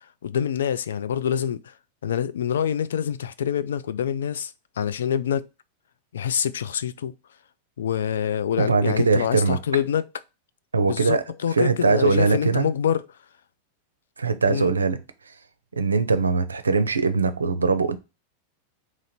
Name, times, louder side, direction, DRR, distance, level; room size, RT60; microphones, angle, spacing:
voice 1, 0.2-1.7 2.0-5.5 6.1-7.1 7.8-10.0 10.8-13.0 14.5-14.7, left 8 dB, 65° left, 0.3 m, -26 dB
voice 2, 8.6-9.6 10.7-11.2 11.5-12.7 14.2-15.0 15.3-15.4 15.7-18.0, right 4 dB, 75° right, 0.5 m, -21 dB
3.8 x 3.0 x 4.1 m
figure-of-eight pair, 90°, 0 cm